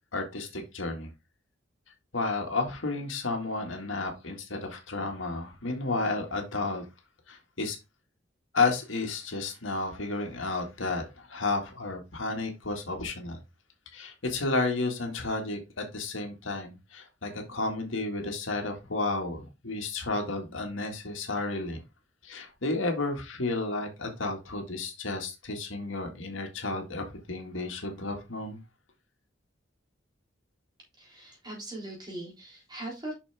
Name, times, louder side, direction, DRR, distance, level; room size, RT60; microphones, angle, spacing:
voice 1, 0.1-1.1 2.1-6.8 7.3-7.8 8.5-13.4 13.9-21.8 22.2-28.6, left 3 dB, 85° left, 1.9 m, -32 dB
voice 2, 31.0-33.1, right 1 dB, 20° right, 3.6 m, -40 dB
6.3 x 6.2 x 3.5 m
head